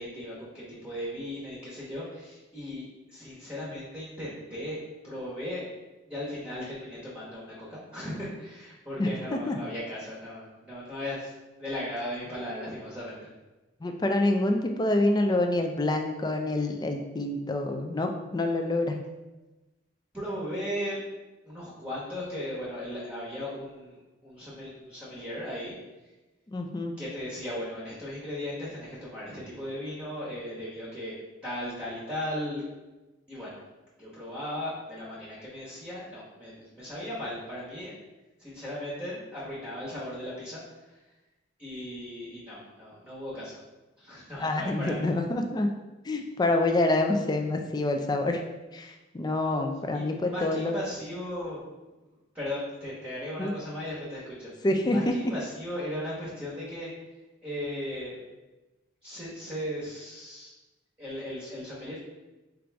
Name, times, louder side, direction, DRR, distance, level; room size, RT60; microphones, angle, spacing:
voice 1, 0.0-2.8 3.1-5.7 6.1-11.3 11.6-13.2 20.1-21.0 21.4-24.0 24.2-25.8 27.0-31.1 31.4-32.6 33.3-33.6 34.0-37.9 38.4-40.6 41.6-43.6 44.0-45.0 49.9-51.6 52.3-54.5 54.9-56.9 57.4-58.2 59.0-60.5 61.0-62.0, left 1 dB, 10° right, -8 dB, 1.0 m, -37 dB
voice 2, 9.0-9.6 13.8-19.0 26.5-26.9 44.4-45.7 46.0-48.4 48.7-50.7 53.4-53.5 54.6-55.1, left 2 dB, 20° left, 4 dB, 0.3 m, -27 dB
4.6 x 2.5 x 3.4 m, 1.1 s
head